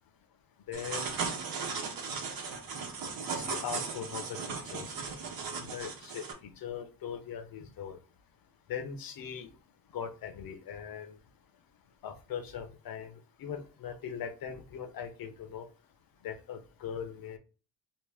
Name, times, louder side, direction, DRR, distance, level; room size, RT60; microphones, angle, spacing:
voice 1, 0.7-1.1 3.3-4.9 5.5-8.0 8.7-9.5 9.9-11.1 12.0-13.1 13.4-15.6 16.2-17.4, left 7 dB, 80° left, 7 dB, 0.8 m, -40 dB
sound 1, 0.7-6.3, right 5 dB, 85° right, 1.0 m, -37 dB
3.0 x 2.7 x 3.4 m, 0.35 s
wide cardioid pair, 140°, 35 cm